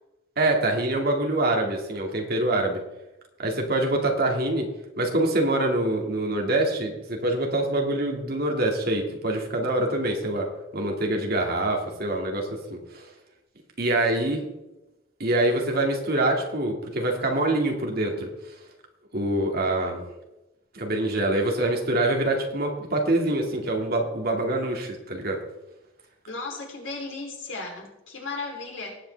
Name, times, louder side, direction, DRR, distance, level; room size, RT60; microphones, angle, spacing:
voice 1, 0.4-2.8 3.4-4.7 5.0-10.5 10.7-13.1 13.8-14.5 15.2-18.3 19.1-20.0 20.7-25.4, right 1 dB, 50° right, 2 dB, 2.2 m, -25 dB
voice 2, 26.3-29.0, left 3 dB, 65° left, 0 dB, 3.4 m, -35 dB
19.0 x 8.1 x 3.4 m, 0.96 s
head